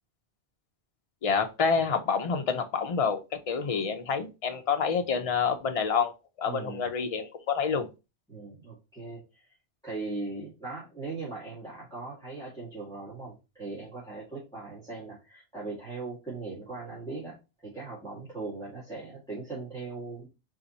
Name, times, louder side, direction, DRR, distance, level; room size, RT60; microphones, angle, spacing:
voice 1, 1.2-6.1 6.4-7.9, left 5 dB, 40° left, 0.6 m, -28 dB
voice 2, 6.4-6.9 8.3-9.5 9.8-17.4 17.6-20.3, right 3 dB, 5° left, 1.6 m, -39 dB
4.0 x 2.8 x 4.0 m
omnidirectional pair, 1.2 m